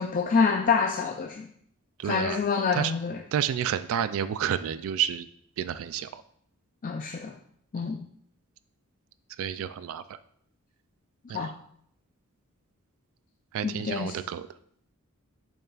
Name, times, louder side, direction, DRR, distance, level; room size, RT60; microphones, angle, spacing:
voice 1, 0.0-1.5 2.0-3.2 6.8-7.3 7.7-8.1 11.3-11.5 13.6-14.2, left 5 dB, 35° left, 5 dB, 0.3 m, -26 dB
voice 2, 2.0-2.4 2.7-2.9 3.3-5.3 5.6-6.2 7.8-7.9 9.4-10.2 11.3-11.5 13.5-14.5, right 9 dB, 65° right, 14 dB, 0.3 m, -30 dB
7.2 x 5.5 x 2.4 m, 0.66 s
head